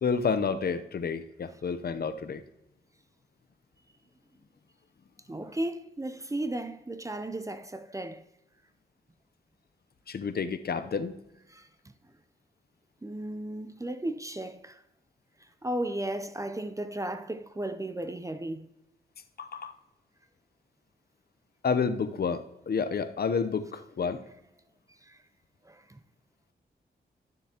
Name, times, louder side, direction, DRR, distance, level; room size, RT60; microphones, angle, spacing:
voice 1, 0.0-2.4 10.1-11.2 19.4-19.7 21.6-24.2, left 5 dB, 55° left, 0.7 m, -30 dB
voice 2, 5.3-8.2 11.5-11.7 13.0-14.8 15.6-18.7 25.0-25.2 25.6-26.0, right 1 dB, 15° right, 0.5 m, -35 dB
11.5 x 7.0 x 2.8 m
cardioid pair, 55°, 19 cm